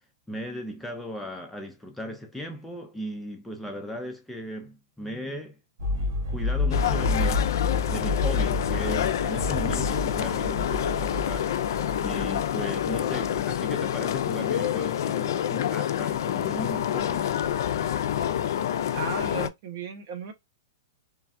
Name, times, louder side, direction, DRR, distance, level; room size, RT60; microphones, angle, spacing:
voice 1, 0.3-5.6 6.3-7.5 7.9-11.5 12.0-17.3, equal, 5° left, 0.4 m, -37 dB
sound 1, 5.8-14.0, left 3 dB, 65° right, 1.2 m, -29 dB
sound 2, 6.7-19.5, left 10 dB, 65° left, 0.3 m, -27 dB
voice 2, 18.9-20.3, right 5 dB, 45° right, 0.8 m, -35 dB
3.1 x 2.3 x 2.5 m
hypercardioid pair, 150°, 2 cm